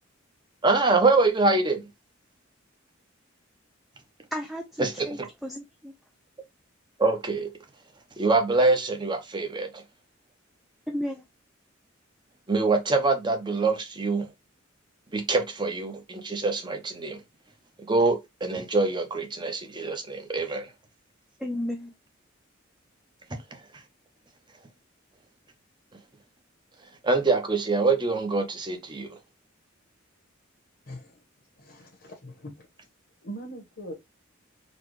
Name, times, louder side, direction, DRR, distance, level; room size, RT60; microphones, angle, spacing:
voice 1, 0.6-1.8 4.8-5.1 7.0-7.5 8.2-9.8 12.5-14.3 15.1-17.2 17.9-20.7 27.0-29.2, right 3 dB, 25° right, 0.7 m, -24 dB
voice 2, 4.3-5.9 10.9-11.2 21.4-21.9, equal, ahead, 0.4 m, -33 dB
voice 3, 30.9-31.2 31.6-32.7 33.2-33.9, right 1 dB, 60° left, 1.0 m, -41 dB
4.1 x 2.3 x 3.1 m
head